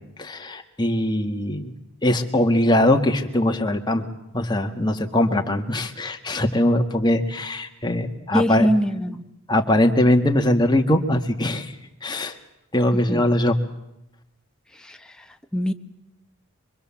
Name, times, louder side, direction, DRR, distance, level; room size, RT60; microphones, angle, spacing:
voice 1, 0.2-1.7 2.0-4.1 4.3-8.7 9.5-11.7 12.0-12.4 12.7-13.5, left 1 dB, 20° left, 1.7 m, -21 dB
voice 2, 8.3-9.2 12.9-13.3 14.7-15.2 15.5-15.7, equal, 5° left, 1.0 m, -23 dB
24.5 x 24.5 x 7.2 m
head